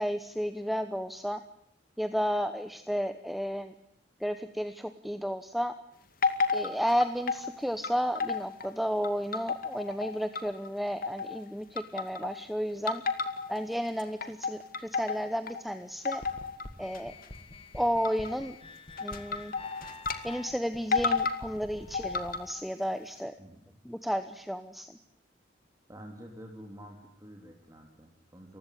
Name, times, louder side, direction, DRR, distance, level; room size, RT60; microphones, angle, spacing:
voice 1, 0.0-1.4 2.0-3.7 4.2-5.7 6.5-13.0 13.5-16.2 16.8-17.1 17.7-18.5 19.0-19.5 20.2-23.3 23.8-24.9, equal, ahead, 10 dB, 1.0 m, -32 dB
sound 1, 6.2-7.5 7.8-8.7 9.0-10.7 11.0-11.4 11.8-12.4 12.9-13.6 14.0-15.6 16.0-16.6 16.9-17.3 18.0-18.4 19.0-20.2 20.5-20.6 20.9-21.4 21.9-22.6, left 5 dB, 50° left, 2.3 m, -31 dB
sound 2, 16.2-22.4, left 2 dB, 30° left, 1.9 m, -47 dB
voice 2, 25.9-28.6, equal, 20° right, 1 dB, 3.1 m, -48 dB
30.0 x 16.0 x 10.0 m, 0.76 s
head